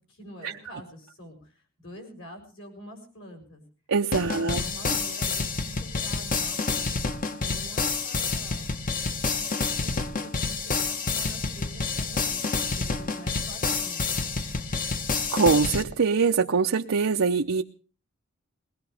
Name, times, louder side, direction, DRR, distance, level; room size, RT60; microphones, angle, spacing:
voice 1, 0.1-3.6 4.2-6.9 7.4-8.7 9.4-14.7, equal, 65° left, 3 dB, 6.8 m, -46 dB
voice 2, 3.9-4.6 15.3-17.6, right 5 dB, 85° right, 2 dB, 0.7 m, -23 dB
sound 1, 4.1-15.8, left 4 dB, 40° left, 1.1 m, -28 dB
21.5 x 19.0 x 3.4 m, 0.37 s
head